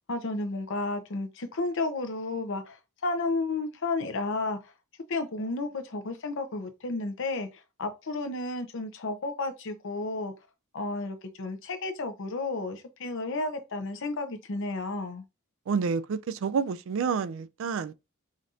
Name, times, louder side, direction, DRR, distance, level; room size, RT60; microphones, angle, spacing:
voice 1, 0.1-4.7 5.1-10.3 10.7-15.2, left 3 dB, 60° left, 0.7 m, -32 dB
voice 2, 15.7-17.9, right 5 dB, 60° right, 0.4 m, -29 dB
5.1 x 2.7 x 2.4 m
head